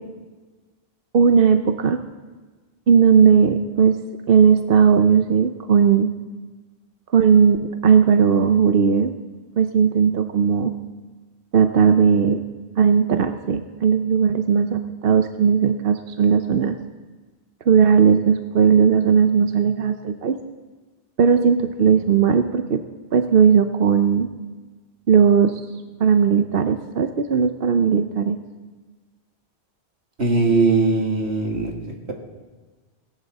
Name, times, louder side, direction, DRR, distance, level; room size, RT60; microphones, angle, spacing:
voice 1, 1.1-2.0 2.9-4.0 4.3-6.1 7.1-9.2 9.6-10.7 11.5-12.4 12.8-16.7 17.7-20.3 21.2-22.8 23.1-24.3 25.1-25.5 26.0-28.4, right 6 dB, 60° right, 8 dB, 0.9 m, -17 dB
voice 2, 30.2-31.7, right 3 dB, 80° right, 1 dB, 2.4 m, -19 dB
18.5 x 16.5 x 4.1 m, 1.3 s
omnidirectional pair, 1.1 m